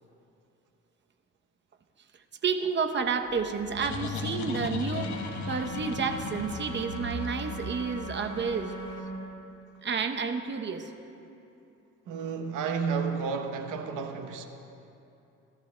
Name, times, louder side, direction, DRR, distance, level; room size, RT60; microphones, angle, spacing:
voice 1, 2.4-5.2 5.5-8.7 9.8-10.9, right 5 dB, 40° right, 0.8 m, -30 dB
sound 1, 3.3-8.8, left 3 dB, 70° left, 1.2 m, -37 dB
sound 2, 4.9-9.0, right 1 dB, 55° left, 1.9 m, -40 dB
voice 2, 12.1-14.5, right 5 dB, 90° right, 0.9 m, -31 dB
19.0 x 13.5 x 2.2 m
cardioid pair, 90°, 30 cm